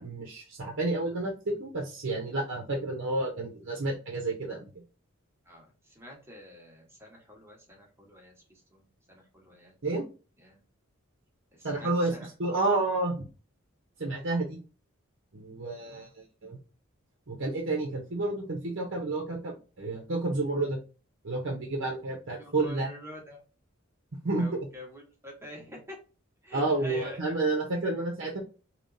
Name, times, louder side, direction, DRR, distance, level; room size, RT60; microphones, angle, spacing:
voice 1, 0.0-4.6 9.8-10.1 11.6-12.1 12.4-13.3 14.0-14.6 15.3-16.1 16.4-16.6 17.3-20.8 21.2-22.9 24.2-24.5 26.5-28.4, right 2 dB, 60° right, -1 dB, 0.8 m, -30 dB
voice 2, 5.5-9.7 10.4-10.6 11.5-12.6 15.8-16.1 22.4-23.4 24.4-26.0 26.4-27.2, left 1 dB, 10° right, -1 dB, 1.2 m, -47 dB
3.3 x 3.0 x 2.6 m, 0.34 s
head